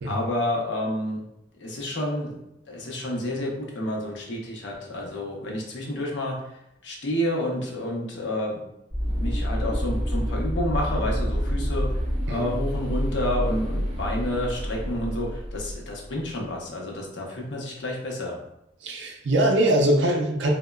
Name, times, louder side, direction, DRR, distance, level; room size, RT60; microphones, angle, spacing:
voice 1, 0.1-1.2 1.6-2.4 2.7-6.5 6.8-8.6 9.0-12.0 12.3-18.4, left 1 dB, 75° left, -1 dB, 0.6 m, -29 dB
sound 1, 8.9-16.3, equal, 15° right, 1.0 m, -28 dB
voice 2, 18.8-20.5, right 1 dB, 70° right, 2 dB, 0.4 m, -22 dB
2.8 x 2.1 x 2.2 m, 0.84 s
head